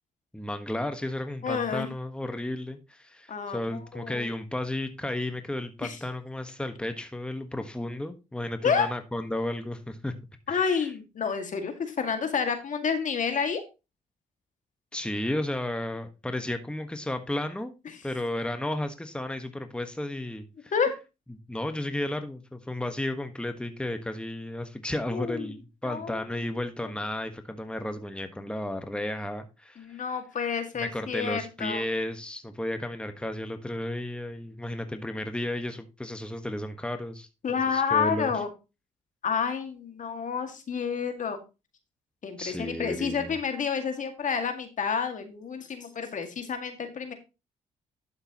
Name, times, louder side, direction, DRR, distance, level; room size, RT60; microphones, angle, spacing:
voice 1, 0.3-10.1 10.5-10.9 14.9-17.7 18.0-20.7 21.5-30.0 30.7-38.4 42.4-43.4, left 1 dB, 5° left, 7 dB, 1.4 m, -33 dB
voice 2, 1.4-1.9 3.3-4.3 5.8-6.0 8.6-8.9 10.5-13.6 20.7-20.9 25.1-25.5 25.8-26.2 29.8-31.8 37.4-38.5 39.2-41.4 42.2-47.1, left 6 dB, 55° left, 6 dB, 2.1 m, -29 dB
11.5 x 6.6 x 3.0 m, 0.27 s
hypercardioid pair, 50°, 16 cm